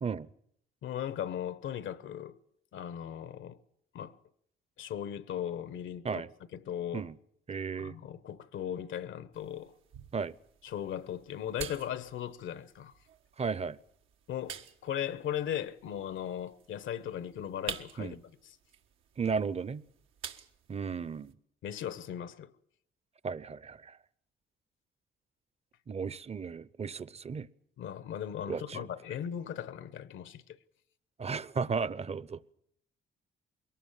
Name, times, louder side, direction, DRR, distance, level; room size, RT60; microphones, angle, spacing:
voice 1, 0.8-2.4 2.7-3.6 3.9-4.2 4.8-6.2 6.5-7.1 7.8-9.7 10.6-12.9 14.3-18.6 21.6-22.5 27.8-30.6, left 10 dB, 75° left, 1.1 m, -38 dB
voice 2, 7.5-7.9 10.1-10.3 13.4-13.8 18.0-18.1 19.2-19.8 20.7-21.3 23.2-24.0 25.9-27.5 28.5-28.9 31.2-32.4, right 5 dB, 30° right, 0.8 m, -34 dB
sound 1, 9.3-21.3, right 8 dB, 85° right, 1.6 m, -49 dB
22.0 x 18.5 x 7.3 m
cardioid pair, 90°, 20 cm